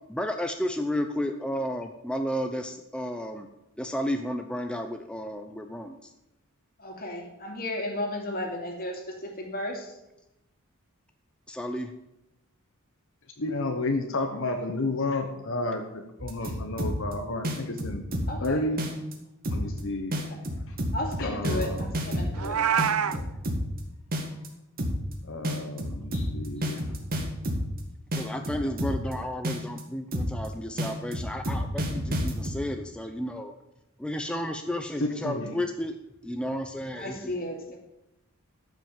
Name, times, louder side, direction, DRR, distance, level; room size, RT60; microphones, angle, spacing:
voice 1, 0.1-3.5 3.8-6.0 11.5-11.9 28.1-33.5 34.0-36.0 36.2-37.4, equal, 5° left, 5 dB, 0.6 m, -32 dB
voice 2, 6.8-9.9 18.3-18.6 20.4-20.5 20.9-23.2 37.0-37.8, left 1 dB, 45° left, 2 dB, 2.6 m, -34 dB
voice 3, 13.4-18.0 18.4-18.9 19.5-20.2 20.7-20.8 21.2-21.9 25.2-26.8 35.0-35.6, left 2 dB, 65° left, 4 dB, 1.1 m, -31 dB
sound 1, 16.2-17.1 17.4-18.5 18.8-19.1 19.4-19.8 20.1-22.5 22.8-23.8 24.1-24.5 24.8-25.1 25.4-27.8 28.1-29.1 29.4-29.8 30.1-30.5 30.8-32.6, equal, 45° right, 2.0 m, -29 dB
Meow, 22.3-23.2, right 8 dB, 90° right, 0.6 m, -25 dB
13.5 x 6.0 x 7.3 m, 0.91 s
head